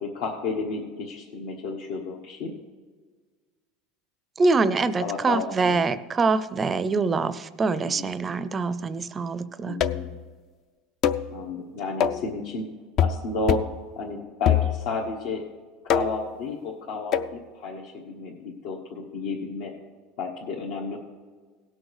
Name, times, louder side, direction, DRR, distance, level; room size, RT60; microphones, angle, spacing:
voice 1, 0.0-2.5 5.0-5.8 7.8-8.1 9.7-10.2 11.3-12.6 13.0-13.7 14.0-15.4 15.8-19.7 20.2-21.0, left 3 dB, 65° left, -2 dB, 1.5 m, -32 dB
voice 2, 4.4-9.8, right 4 dB, 20° right, 14 dB, 0.5 m, -24 dB
sound 1, 9.8-10.2 11.0-11.3 12.0-12.3 13.0-13.2 13.5-13.8 14.5-15.0 15.9-16.3 17.1-17.4, left 9 dB, 40° left, 0.4 m, -24 dB
17.5 x 6.3 x 4.9 m, 1.4 s
supercardioid pair, 155°, 0 cm